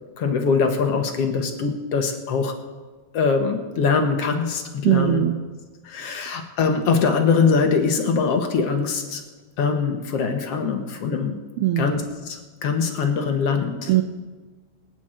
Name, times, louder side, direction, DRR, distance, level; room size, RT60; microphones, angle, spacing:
voice 1, 0.2-2.5 3.1-5.2 5.9-9.2 9.6-11.4 11.8-12.0 12.3-13.9, left 5 dB, 60° left, 5 dB, 2.1 m, -22 dB
voice 2, 4.8-5.4 6.0-6.2 11.6-11.9 13.9-14.0, right 13 dB, 85° right, 7 dB, 1.2 m, -20 dB
25.0 x 9.4 x 4.4 m, 1.3 s
omnidirectional pair, 3.4 m